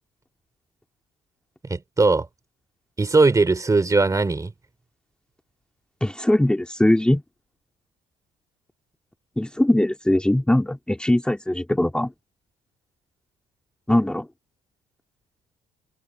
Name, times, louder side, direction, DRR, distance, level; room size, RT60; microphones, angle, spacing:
voice 1, 1.7-2.3 3.0-4.5, right 3 dB, 20° right, 2.9 m, -19 dB
voice 2, 6.0-7.2 9.4-12.1 13.9-14.3, left 1 dB, 5° left, 2.2 m, -20 dB
cardioid pair, 110°, 17 cm